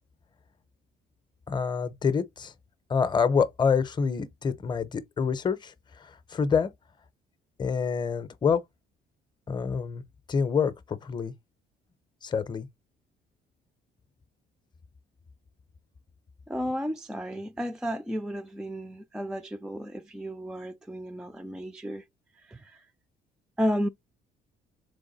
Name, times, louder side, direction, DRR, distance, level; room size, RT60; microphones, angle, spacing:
voice 1, 1.5-2.5 2.9-5.7 6.3-6.7 7.6-8.6 9.5-10.0 10.3-11.3 12.2-12.7, left 6 dB, 25° left, 0.6 m, -26 dB
voice 2, 16.5-22.0 22.5-22.8 23.6-23.9, equal, 5° right, 0.3 m, -32 dB
3.6 x 3.5 x 4.0 m
cardioid pair, 110°, 17 cm